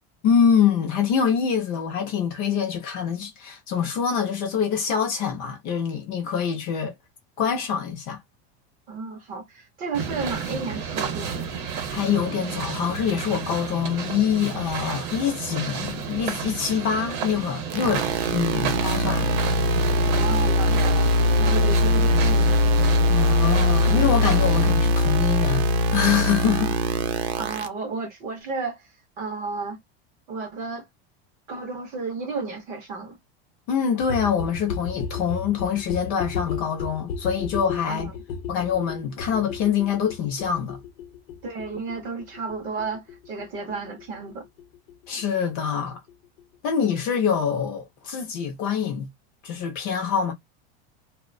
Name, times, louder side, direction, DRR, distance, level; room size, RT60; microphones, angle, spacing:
voice 1, 0.2-6.9 7.4-8.2 11.9-19.3 23.1-26.8 33.7-38.1 38.5-40.8 45.1-46.0 46.6-49.1 49.4-50.3, left 7 dB, 30° left, 0.4 m, -25 dB
voice 2, 8.9-11.6 20.1-22.6 27.4-28.9 29.2-29.8 30.3-30.9 31.5-33.2 37.9-38.1 41.4-44.4, right 4 dB, 25° right, 0.5 m, -32 dB
sound 1, 9.9-24.7, right 6 dB, 50° right, 0.8 m, -32 dB
sound 2, 17.7-27.7, left 1 dB, 75° right, 0.6 m, -21 dB
sound 3, 34.0-45.5 45.8-45.9 46.1-46.2 46.4-46.5 46.7-46.8 47.0-47.1 47.3-47.4, left 6 dB, 70° left, 0.7 m, -34 dB
2.5 x 2.1 x 2.5 m
supercardioid pair, 175°, 31 cm